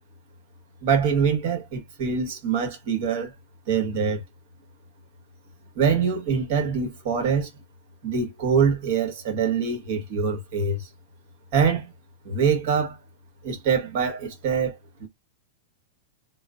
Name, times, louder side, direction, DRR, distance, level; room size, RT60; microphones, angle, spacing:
voice 1, 0.8-3.3 3.7-4.2 5.7-7.5 8.0-10.9 11.5-11.9 12.2-13.0 13.4-15.1, right 6 dB, 60° right, 1.4 m, -24 dB
3.1 x 2.1 x 2.4 m
hypercardioid pair, 135°, 0 cm